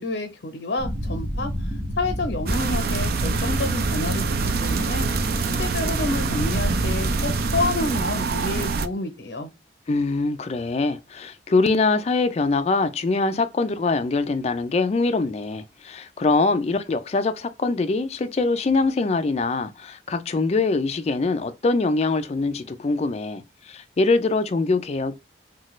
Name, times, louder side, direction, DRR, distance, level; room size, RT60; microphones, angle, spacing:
voice 1, 0.0-4.2 4.6-5.1 5.6-9.5, left 2 dB, 75° left, 0.6 m, -29 dB
sound 1, 0.8-7.6, equal, 15° right, 0.8 m, -29 dB
sound 2, 2.5-8.9, right 4 dB, 55° right, 0.3 m, -26 dB
voice 2, 9.9-25.1, left 3 dB, 35° left, 0.4 m, -23 dB
3.2 x 2.2 x 2.9 m
head